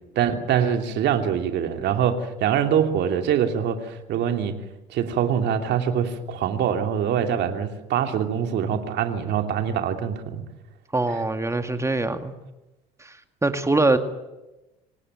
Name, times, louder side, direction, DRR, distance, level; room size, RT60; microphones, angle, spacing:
voice 1, 0.1-4.5 4.9-10.4 11.1-11.2, right 8 dB, 55° right, 5 dB, 2.9 m, -24 dB
voice 2, 10.9-12.3 13.0-13.1 13.4-14.0, right 2 dB, 15° right, 7 dB, 2.1 m, -23 dB
26.5 x 19.0 x 9.2 m, 1.0 s
hypercardioid pair, 65°, 21 cm